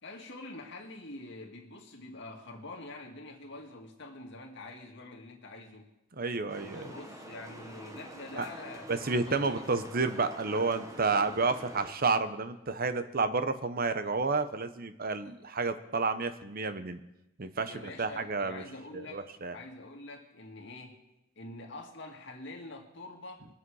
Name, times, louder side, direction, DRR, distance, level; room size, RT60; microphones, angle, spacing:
voice 1, 0.0-5.9 6.6-9.6 17.6-19.2 19.5-21.0 21.4-23.5, left 2 dB, 60° left, 1 dB, 2.0 m, -46 dB
voice 2, 6.1-6.9 8.4-8.5 8.9-17.0 17.4-18.6 18.9-19.6, right 4 dB, 45° right, 10 dB, 0.9 m, -30 dB
sound 1, 6.5-11.9, equal, 15° right, 1.2 m, -46 dB
22.5 x 7.8 x 4.8 m, 0.92 s
head